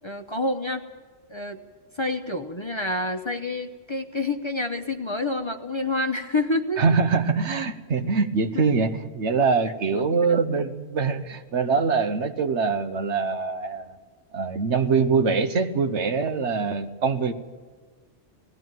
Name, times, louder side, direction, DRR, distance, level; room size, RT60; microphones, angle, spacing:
voice 1, 0.0-0.8 1.3-1.6 2.0-6.8 8.5-8.6 9.9-10.4, left 2 dB, 25° left, 4 dB, 0.9 m, -28 dB
voice 2, 6.8-14.0 14.3-17.3, right 5 dB, 65° right, 9 dB, 1.3 m, -23 dB
19.0 x 15.0 x 9.3 m, 1.4 s
omnidirectional pair, 1.3 m